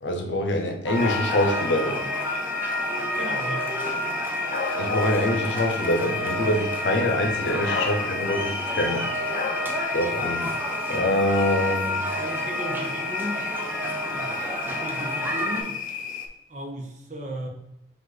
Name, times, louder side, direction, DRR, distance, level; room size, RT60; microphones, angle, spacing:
voice 1, 0.0-2.1 4.7-9.1 9.9-10.5 10.9-12.1, left 1 dB, 85° left, 0.7 m, -25 dB
sound 1, 0.9-15.6, equal, 10° right, 0.5 m, -29 dB
sound 2, 1.0-16.3, left 6 dB, 45° left, 0.5 m, -33 dB
voice 2, 3.1-3.8 12.2-15.8 16.5-17.5, equal, 40° right, 0.8 m, -36 dB
5.1 x 2.5 x 4.0 m
head